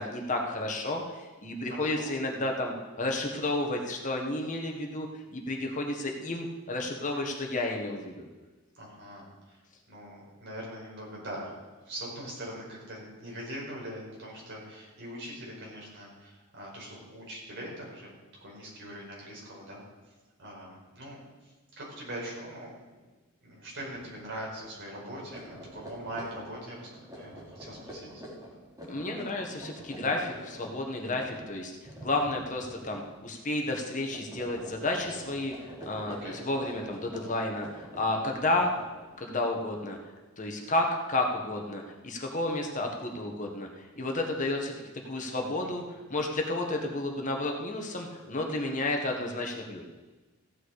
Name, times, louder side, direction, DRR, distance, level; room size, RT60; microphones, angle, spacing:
voice 1, 0.0-8.3 28.9-31.7 32.0-35.5 35.9-38.7 39.2-40.0 40.4-44.8 45.0-45.8 46.1-49.8, left 2 dB, 35° left, 2 dB, 1.5 m, -31 dB
voice 2, 1.7-2.1 8.7-9.6 9.9-11.5 11.8-18.1 18.4-19.8 20.4-22.7 23.4-28.2 36.1-36.4 40.7-40.8 45.4-45.7 46.1-46.2, right 1 dB, 55° right, -3 dB, 5.0 m, -42 dB
sound 1, 23.7-24.1 24.4-24.6 25.1-33.2 33.5-33.8 34.1-39.2, equal, 15° right, 3.3 m, -46 dB
15.0 x 9.5 x 4.9 m, 1.2 s
head